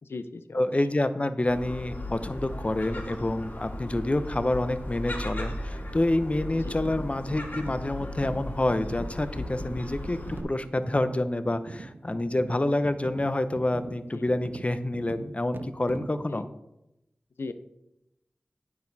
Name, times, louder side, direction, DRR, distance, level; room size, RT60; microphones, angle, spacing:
voice 1, 0.0-0.9 6.7-6.8 14.1-14.2 16.3-16.5 17.4-17.5, left 3 dB, 85° left, 10 dB, 0.6 m, -38 dB
voice 2, 0.5-16.5, left 1 dB, 35° left, 11 dB, 0.7 m, -28 dB
Gull seagull, 1.5-10.4, left 1 dB, 55° left, 2.3 m, -37 dB
sound 1, 6.6-16.3, right 3 dB, 60° right, 0.5 m, -43 dB
9.3 x 7.2 x 4.0 m, 0.89 s
cardioid pair, 40°, 4 cm